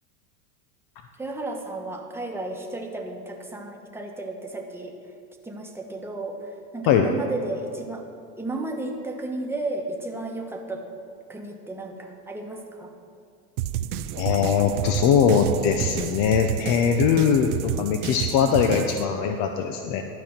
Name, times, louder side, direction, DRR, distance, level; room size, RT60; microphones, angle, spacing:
voice 1, 1.2-4.9 5.4-8.1 8.4-10.8 11.3-12.9 18.4-18.6, right 2 dB, 5° right, 1 dB, 1.2 m, -33 dB
sound 1, 13.6-19.1, right 11 dB, 70° right, 0.6 m, -30 dB
voice 2, 14.2-20.0, left 7 dB, 45° left, 5 dB, 0.8 m, -21 dB
12.5 x 5.3 x 7.4 m, 2.4 s
supercardioid pair, 110°, 46 cm